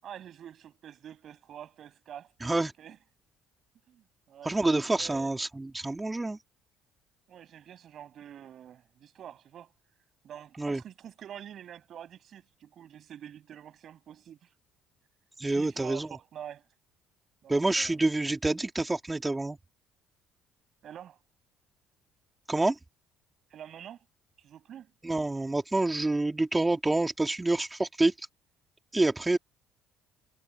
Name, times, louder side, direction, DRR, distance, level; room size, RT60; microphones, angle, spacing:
voice 1, 0.0-3.0 3.9-4.5 4.9-5.3 7.3-9.7 10.2-14.5 15.4-16.7 17.4-18.0 20.8-21.2 23.5-24.0 24.4-24.9, right 10 dB, 55° right, 6.8 m, -47 dB
voice 2, 2.4-2.7 4.4-6.4 10.6-10.8 15.4-16.1 17.5-19.6 22.5-22.8 25.0-28.1 28.9-29.4, right 2 dB, 15° right, 3.0 m, -27 dB
supercardioid pair, 80°, 0 cm